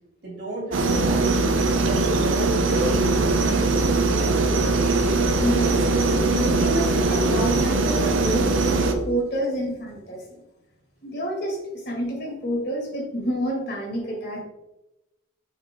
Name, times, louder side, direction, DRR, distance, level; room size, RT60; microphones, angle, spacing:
voice 1, 0.2-1.4 1.8-4.5, right 1 dB, 55° right, -2 dB, 2.6 m, -34 dB
sound 1, 0.7-8.9, right 3 dB, 80° right, 0.9 m, -21 dB
voice 2, 5.4-5.8 6.3-10.4 11.0-14.4, equal, 50° left, 0 dB, 2.0 m, -28 dB
6.7 x 5.9 x 3.7 m, 0.96 s
head